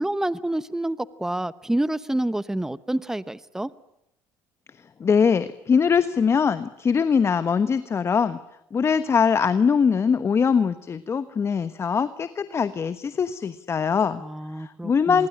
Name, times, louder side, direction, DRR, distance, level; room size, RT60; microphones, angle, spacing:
voice 1, 0.0-3.7 14.2-15.3, right 1 dB, 5° right, 16 dB, 1.0 m, -28 dB
voice 2, 5.0-8.4 8.7-14.2 14.5-15.3, left 6 dB, 35° left, 12 dB, 1.2 m, -22 dB
25.5 x 22.5 x 9.9 m, 0.79 s
supercardioid pair, 90°, 8 cm